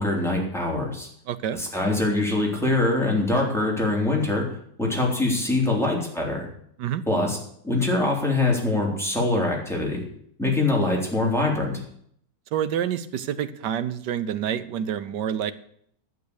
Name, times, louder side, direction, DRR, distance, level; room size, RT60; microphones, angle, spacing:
voice 1, 0.0-1.1 1.5-4.4 4.8-6.5 7.1-7.4 7.6-10.0 10.4-11.8, left 2 dB, ahead, -2 dB, 3.6 m, -23 dB
voice 2, 1.3-1.6 6.8-7.0 12.5-15.5, right 9 dB, 75° right, 13 dB, 1.4 m, -28 dB
12.0 x 7.3 x 8.3 m, 0.66 s
omnidirectional pair, 1.9 m